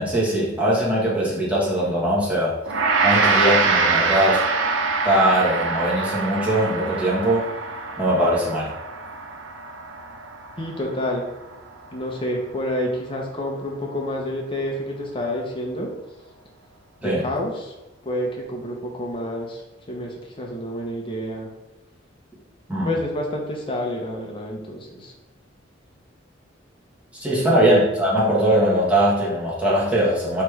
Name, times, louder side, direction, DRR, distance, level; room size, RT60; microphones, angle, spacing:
voice 1, 0.0-2.5 3.0-4.4 5.0-7.5 8.0-8.7 17.0-17.2 22.7-22.9 27.2-30.4, right 1 dB, 5° right, -7 dB, 1.2 m, -20 dB
Gong, 2.7-12.0, right 4 dB, 75° right, 0.5 m, -24 dB
voice 2, 10.6-11.3 11.9-15.9 17.0-17.7 18.0-21.5 22.8-25.1 27.2-27.6, left 1 dB, 25° left, -1 dB, 0.8 m, -29 dB
3.3 x 3.2 x 4.7 m, 0.98 s
head